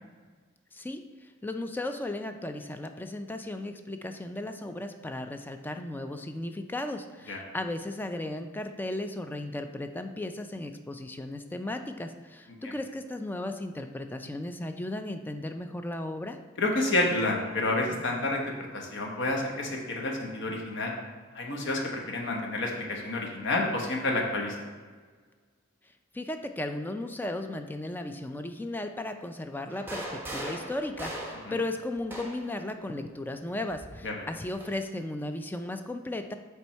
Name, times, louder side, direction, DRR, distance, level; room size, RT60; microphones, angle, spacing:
voice 1, 0.7-16.4 26.1-36.3, left 1 dB, 10° left, 7 dB, 0.3 m, -35 dB
voice 2, 16.6-18.4 18.7-20.9 21.3-24.7 34.0-34.3, left 2 dB, 60° left, 0 dB, 1.1 m, -29 dB
sound 1, 29.7-32.6 33.7-34.8, right 1 dB, 10° right, 0.9 m, -39 dB
7.2 x 3.4 x 4.5 m, 1.5 s
head